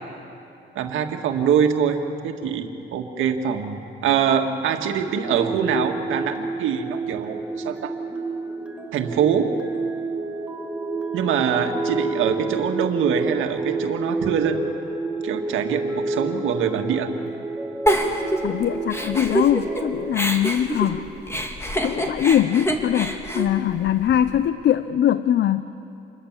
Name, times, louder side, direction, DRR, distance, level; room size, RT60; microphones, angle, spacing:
voice 1, 0.8-7.9 8.9-9.5 11.1-14.6 15.2-17.1, right 7 dB, 85° right, 4 dB, 1.8 m, -24 dB
sound 1, 5.2-20.1, right 3 dB, 5° right, 2.3 m, -29 dB
Giggle, 17.9-19.8 20.1-24.4, equal, 15° left, 2.6 m, -26 dB
voice 2, 18.4-21.1 21.8-25.6, left 10 dB, 60° left, 13 dB, 0.7 m, -21 dB
27.5 x 20.5 x 7.4 m, 2.8 s
cardioid pair, 90°, 20 cm